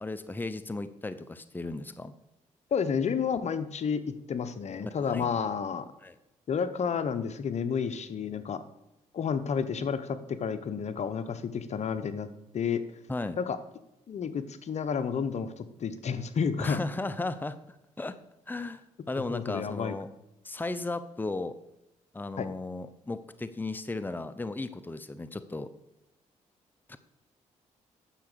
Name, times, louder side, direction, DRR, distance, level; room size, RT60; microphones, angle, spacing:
voice 1, 0.0-2.1 4.8-5.3 6.0-6.1 13.1-13.4 16.6-17.6 18.0-18.2 18.5-18.8 19.1-20.1 20.4-21.5 22.1-25.7 26.9-27.0, left 2 dB, 15° left, 12 dB, 0.8 m, -35 dB
voice 2, 2.7-4.0 4.3-5.8 6.5-8.6 9.1-12.3 12.5-12.8 13.4-13.6 14.1-16.8 19.3-19.9 22.4-22.5, left 6 dB, 55° left, 12 dB, 1.0 m, -30 dB
10.0 x 7.1 x 6.9 m, 0.91 s
cardioid pair, 70°, 13 cm